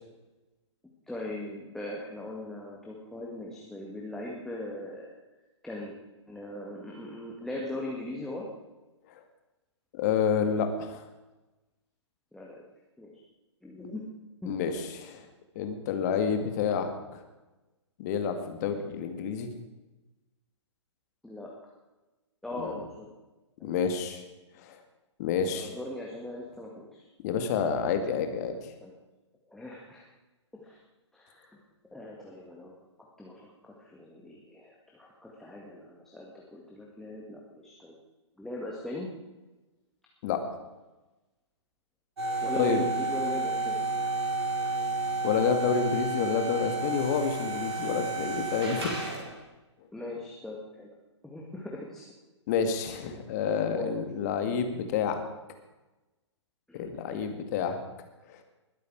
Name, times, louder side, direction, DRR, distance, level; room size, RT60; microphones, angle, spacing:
voice 1, 1.1-5.1 5.6-5.9 6.3-8.5 12.3-12.6 13.0-13.1 13.6-14.0 14.4-14.6 21.2-21.7 22.4-23.1 23.6-23.7 25.5-27.1 28.8-28.9 29.5-30.0 30.5-30.8 31.1-31.6 31.9-32.8 33.2-38.0 38.4-39.1 42.4-43.8 49.9-50.9 51.2-52.0 53.7-54.0 56.7-56.8, left 1 dB, ahead, -3 dB, 1.8 m, -40 dB
voice 2, 9.9-11.0 14.4-15.2 15.6-17.2 18.0-19.5 22.6-22.7 23.6-24.2 24.6-24.8 25.2-25.7 27.2-28.6 40.2-40.4 42.6-42.8 45.2-48.9 52.5-55.2 56.7-57.8 58.3-58.4, left 6 dB, 35° left, 6 dB, 2.0 m, -29 dB
sound 1, 42.2-49.4, right 2 dB, 60° right, 5.1 m, -31 dB
20.5 x 9.3 x 4.8 m, 1.1 s
figure-of-eight pair, 120°, 15 cm